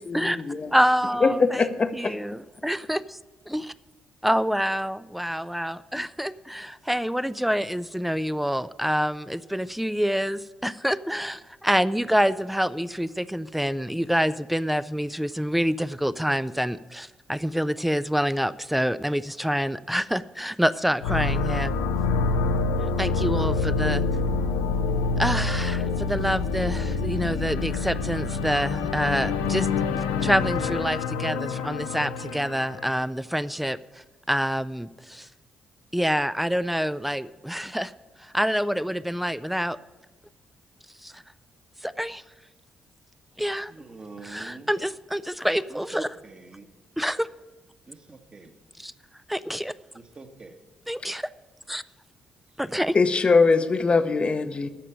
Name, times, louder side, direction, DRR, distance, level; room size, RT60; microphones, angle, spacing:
voice 1, 0.0-0.7 1.2-2.1 52.9-54.7, left 4 dB, 35° left, 11 dB, 0.8 m, -22 dB
voice 2, 0.7-1.6 1.9-3.0 3.5-3.7 4.2-21.8 23.0-24.0 25.2-29.7 30.0-33.8 34.3-35.3 35.9-37.9 38.2-39.8 41.0-41.2 41.8-42.2 43.4-43.7 44.2-46.1 47.0-47.3 48.8-48.9 49.3-49.7 50.9-51.2 51.7-51.8 52.6-53.0, equal, 5° right, 16 dB, 0.4 m, -27 dB
voice 3, 1.3-1.6 43.7-44.7 45.7-46.7 47.9-48.5 49.9-50.6, right 3 dB, 35° right, 5 dB, 1.4 m, -43 dB
sound 1, 21.0-32.9, left 4 dB, 80° left, 0.6 m, -26 dB
10.0 x 6.6 x 8.8 m, 1.1 s
hypercardioid pair, 40°, 3 cm